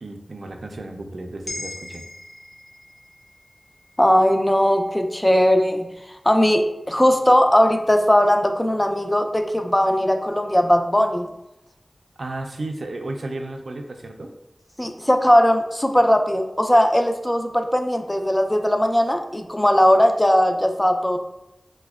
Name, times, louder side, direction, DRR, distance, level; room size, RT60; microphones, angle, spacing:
voice 1, 0.0-2.1 12.2-14.3, right 2 dB, 85° right, 4 dB, 0.3 m, -33 dB
sound 1, 1.5-5.9 6.3-6.5, left 2 dB, 80° left, 0.6 m, -41 dB
voice 2, 4.0-5.9 6.2-11.3 14.8-21.2, equal, 15° left, 5 dB, 0.4 m, -18 dB
4.7 x 2.1 x 2.3 m, 0.89 s
wide cardioid pair, 50°, 0 cm